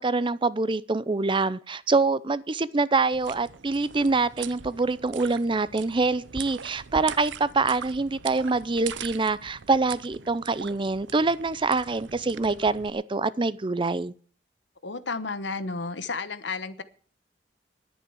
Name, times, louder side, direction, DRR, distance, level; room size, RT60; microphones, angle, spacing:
voice 1, 0.0-14.1, right 3 dB, 30° right, 0.6 m, -25 dB
sound 1, 3.1-12.9, right 8 dB, 90° right, 0.7 m, -42 dB
voice 2, 14.8-16.8, left 4 dB, 80° left, 1.1 m, -32 dB
11.0 x 9.0 x 8.0 m
head